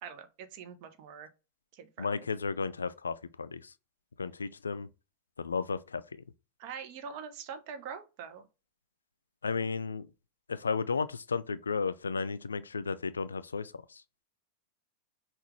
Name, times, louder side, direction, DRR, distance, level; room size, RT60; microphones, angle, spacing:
voice 1, 0.0-1.3 1.7-2.3 6.6-8.5, right 7 dB, 45° right, 0.8 m, -44 dB
voice 2, 2.0-3.6 4.2-4.9 5.4-6.0 9.4-10.1 10.5-13.7, left 5 dB, 75° left, 0.3 m, -33 dB
5.7 x 2.4 x 3.2 m
figure-of-eight pair, 90°, 0 cm